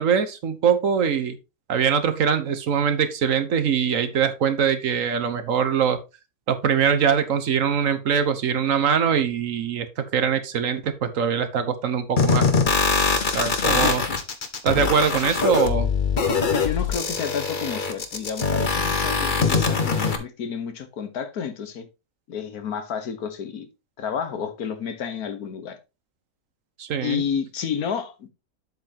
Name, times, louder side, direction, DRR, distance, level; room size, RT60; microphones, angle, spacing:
voice 1, 0.0-1.4 1.7-6.0 6.5-12.5 13.3-14.0 14.6-15.9 26.8-27.2, right 7 dB, 65° right, 1.3 m, -22 dB
sound 1, 12.2-20.2, left 4 dB, 40° left, 1.0 m, -23 dB
voice 2, 13.6-14.2 16.3-21.9 22.3-23.7 24.0-25.8 27.0-28.3, left 7 dB, 90° left, 1.6 m, -30 dB
7.8 x 7.5 x 2.9 m
omnidirectional pair, 1.5 m